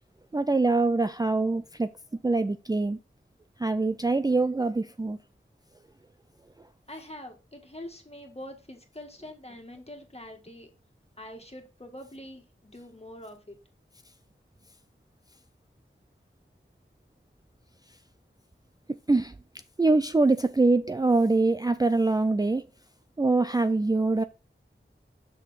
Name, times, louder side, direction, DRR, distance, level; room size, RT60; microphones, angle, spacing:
voice 1, 0.3-1.9 2.2-3.0 3.6-5.2 19.1-19.3 19.8-22.7 23.2-24.2, right 3 dB, 20° right, 0.4 m, -24 dB
voice 2, 6.9-10.7 11.2-13.6, left 1 dB, 30° left, 1.8 m, -44 dB
6.9 x 6.1 x 3.3 m
wide cardioid pair, 60°, 21 cm